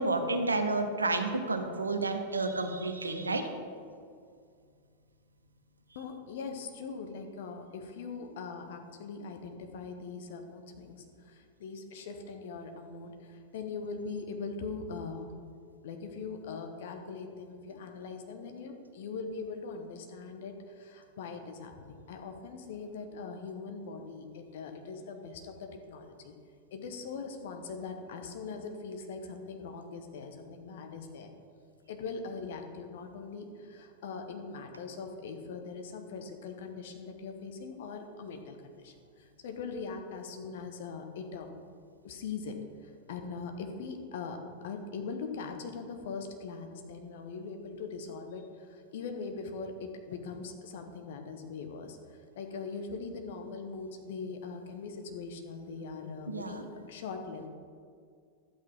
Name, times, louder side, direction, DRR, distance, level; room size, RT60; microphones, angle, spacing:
voice 1, 0.0-3.5 56.3-56.6, right 2 dB, 80° right, 7 dB, 0.8 m, -30 dB
voice 2, 5.9-15.3 15.8-26.3 26.7-31.3 31.9-41.5 42.0-57.5, left 4 dB, 55° left, 5 dB, 1.1 m, -41 dB
12.0 x 8.3 x 3.6 m, 2.2 s
figure-of-eight pair, 90°, 0 cm